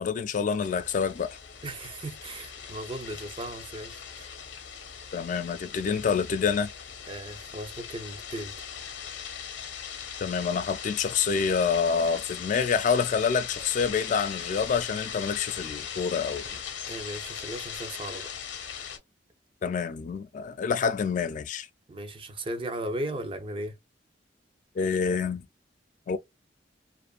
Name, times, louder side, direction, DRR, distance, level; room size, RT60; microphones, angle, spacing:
voice 1, 0.0-1.4 5.1-6.7 10.2-16.6 19.6-21.7 24.8-25.5 26.1-26.2, left 6 dB, 45° left, 0.3 m, -27 dB
sound 1, 0.6-19.0, left 7 dB, 70° left, 0.8 m, -39 dB
voice 2, 1.6-4.3 7.1-8.6 16.9-18.3 21.9-23.8, right 1 dB, 30° right, 0.5 m, -37 dB
2.5 x 2.5 x 2.3 m
head